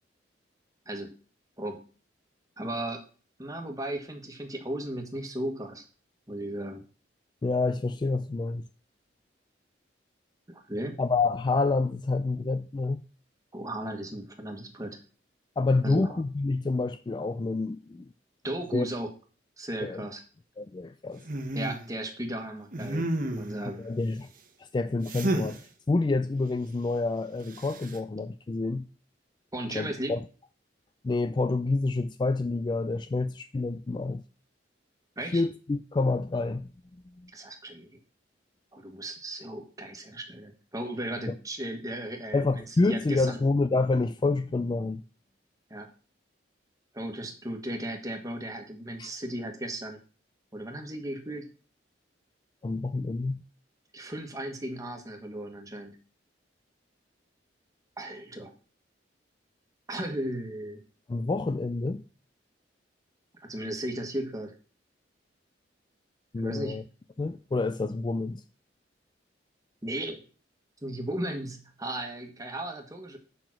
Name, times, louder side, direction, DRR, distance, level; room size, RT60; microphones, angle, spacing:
voice 1, 2.6-3.0 3.4-5.8 6.3-6.8 10.5-11.0 13.5-15.0 15.8-16.2 18.4-19.1 19.6-20.2 21.5-23.8 29.5-30.1 35.2-35.4 37.3-37.9 38.7-43.4 45.7-45.9 46.9-50.0 50.5-51.5 53.9-56.0 58.0-58.5 59.9-60.8 63.4-64.5 66.4-66.8 69.8-70.2 70.8-73.2, right 1 dB, 20° right, 1.5 m, -35 dB
voice 2, 7.4-8.6 11.0-13.0 15.6-18.1 18.7-18.9 19.8-20.1 20.6-21.2 23.8-24.3 24.6-28.9 29.7-30.2 31.0-34.2 35.3-36.7 37.2-37.3 42.3-45.0 49.0-49.1 52.6-53.4 61.1-62.0 66.3-66.8 67.2-68.4, left 3 dB, 25° left, 0.3 m, -28 dB
sound 1, 21.3-21.8 22.7-23.6 25.1-25.6 27.5-28.0, right 1 dB, 50° right, 1.1 m, -30 dB
7.0 x 5.8 x 6.0 m
head